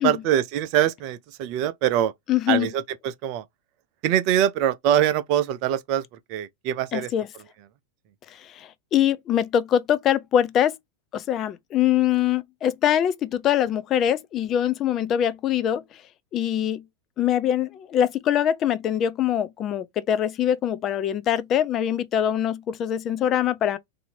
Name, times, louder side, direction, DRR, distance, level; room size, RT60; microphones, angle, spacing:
voice 1, 0.0-2.1 2.5-3.4 4.0-6.0 6.3-7.1, right 11 dB, 45° right, 0.5 m, -23 dB
voice 2, 2.3-2.7 6.9-7.3 8.4-10.8 11.1-15.8 16.3-16.8 17.2-23.8, left 10 dB, 30° left, 0.4 m, -23 dB
2.7 x 2.7 x 4.2 m
figure-of-eight pair, 90°, 0 cm